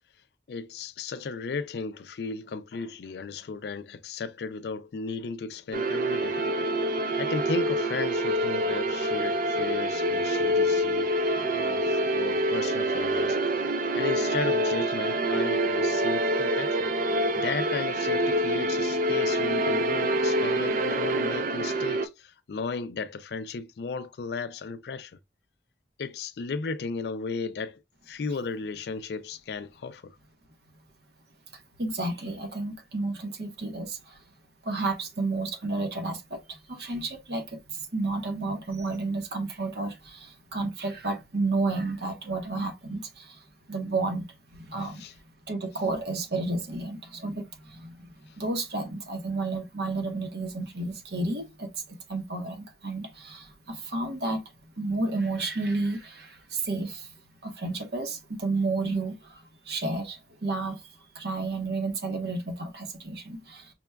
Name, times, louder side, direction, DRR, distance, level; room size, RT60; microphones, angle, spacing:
voice 1, 0.5-6.8 7.2-11.1 11.4-16.9 17.4-25.2 26.0-30.2 45.0-45.1, left 4 dB, 65° left, 0.4 m, -35 dB
sound 1, 5.7-22.1, right 1 dB, 45° right, 0.4 m, -26 dB
voice 2, 31.8-34.2 34.6-43.4 43.7-44.3 44.6-45.0 45.5-48.1 48.4-51.7 52.1-54.4 54.8-57.1 57.4-60.8 61.1-63.7, right 3 dB, 65° right, 0.9 m, -31 dB
5.8 x 2.2 x 2.2 m
head